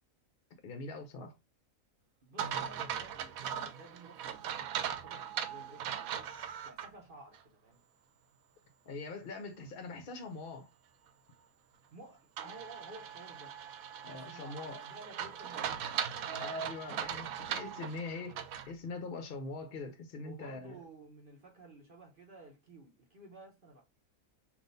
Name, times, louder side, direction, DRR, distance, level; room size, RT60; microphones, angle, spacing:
voice 1, 0.6-1.4 8.8-10.7 14.0-14.8 16.4-20.8, left 3 dB, 55° left, 0.7 m, -43 dB
voice 2, 2.2-7.8 11.9-13.6 14.1-16.5 20.2-23.8, right 2 dB, 45° right, 1.0 m, -54 dB
sound 1, 2.4-6.9 7.3-7.4 12.4-18.7, right 8 dB, 85° right, 1.0 m, -39 dB
3.6 x 2.6 x 3.8 m
omnidirectional pair, 1.4 m